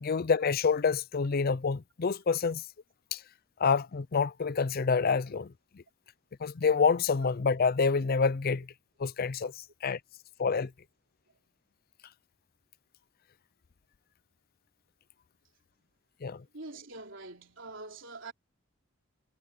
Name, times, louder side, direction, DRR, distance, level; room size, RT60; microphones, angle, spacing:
voice 1, 0.0-2.6 3.1-3.2 3.6-5.5 6.4-8.7 9.0-9.5 9.8-10.0 10.4-10.7 16.2-16.4, left 5 dB, 50° left, 0.5 m, -27 dB
voice 2, 16.5-18.3, right 3 dB, 70° right, 3.8 m, -44 dB
head